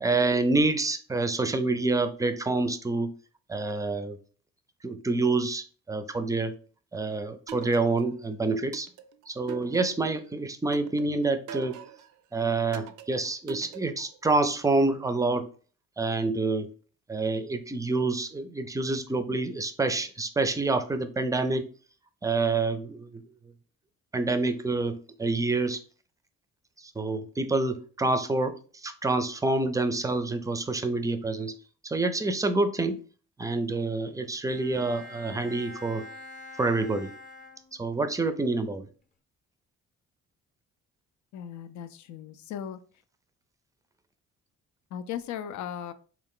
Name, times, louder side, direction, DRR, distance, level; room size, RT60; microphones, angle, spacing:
voice 1, 0.0-3.1 3.5-4.2 4.8-6.5 6.9-8.9 9.3-11.8 12.3-15.5 16.0-16.7 17.1-21.6 22.2-23.2 24.1-25.8 27.0-28.6 28.8-31.5 31.8-33.0 33.4-36.0 36.6-37.1 37.8-38.9, right 3 dB, 10° right, 0.4 m, -27 dB
sound 1, 7.5-8.2 8.7-10.2 10.7-12.1 12.7-14.2, right 9 dB, 75° right, 0.5 m, -43 dB
Bowed string instrument, 34.5-38.1, left 1 dB, 30° left, 0.7 m, -46 dB
voice 2, 41.3-42.8 44.9-45.9, left 9 dB, 70° left, 0.5 m, -37 dB
3.6 x 2.4 x 3.6 m
cardioid pair, 90°, 30 cm